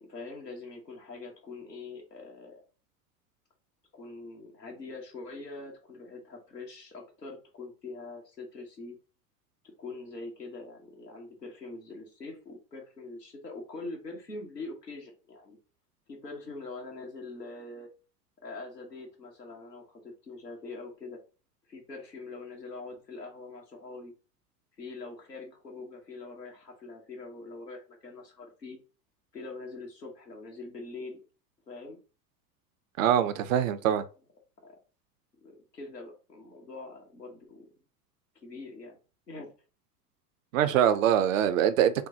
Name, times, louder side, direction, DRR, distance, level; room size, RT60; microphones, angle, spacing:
voice 1, 0.0-2.6 3.9-9.0 9.6-15.6 16.1-17.9 18.4-21.2 21.7-24.1 24.8-28.8 29.3-31.2 31.7-32.0 34.6-34.8 35.4-37.7 38.4-39.0 39.3-39.5, left 3 dB, 90° left, 1.2 m, -43 dB
voice 2, 33.0-34.1 40.5-41.9, right 10 dB, 55° right, 0.6 m, -23 dB
6.2 x 2.2 x 2.7 m
figure-of-eight pair, 85°, 47 cm